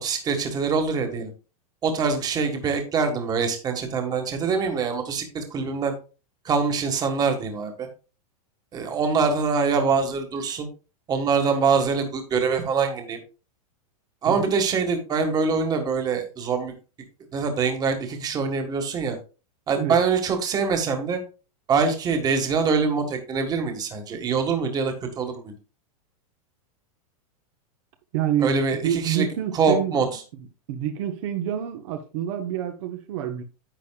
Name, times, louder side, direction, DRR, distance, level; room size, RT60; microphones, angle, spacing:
voice 1, 0.0-1.3 1.8-5.9 6.5-7.9 8.7-10.7 11.1-13.2 14.2-16.7 17.3-19.2 19.7-21.2 21.7-25.5 28.4-29.3 29.5-30.2, right 5 dB, 20° right, 1.7 m, -24 dB
voice 2, 28.1-28.6 28.8-30.1 30.7-33.4, right 10 dB, 55° right, 1.3 m, -27 dB
10.5 x 8.4 x 2.4 m
supercardioid pair, 155°, 19 cm